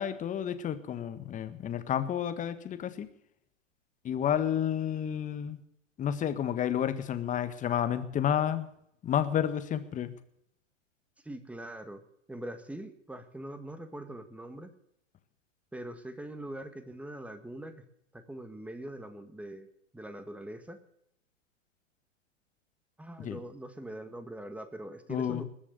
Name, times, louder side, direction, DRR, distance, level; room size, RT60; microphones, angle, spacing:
voice 1, 0.0-3.1 4.0-5.6 6.0-8.7 9.0-10.1 23.2-23.4 25.1-25.4, left 9 dB, 20° left, 10 dB, 1.6 m, -30 dB
voice 2, 11.2-12.0 12.3-14.7 15.7-17.7 18.1-19.7 19.9-20.8 23.0-25.4, right 1 dB, 5° right, 10 dB, 1.7 m, -42 dB
21.0 x 7.1 x 9.6 m, 0.71 s
hypercardioid pair, 120°, 38 cm